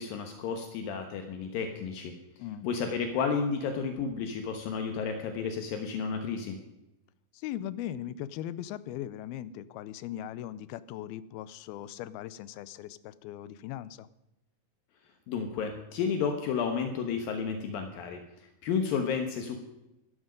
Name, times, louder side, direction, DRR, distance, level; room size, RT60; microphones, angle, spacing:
voice 1, 0.0-2.2 2.6-6.6 15.3-19.6, left 6 dB, 75° left, 5 dB, 2.9 m, -32 dB
voice 2, 7.3-14.1, left 12 dB, 90° left, 17 dB, 2.6 m, -39 dB
15.5 x 13.5 x 5.2 m, 0.91 s
omnidirectional pair, 4.3 m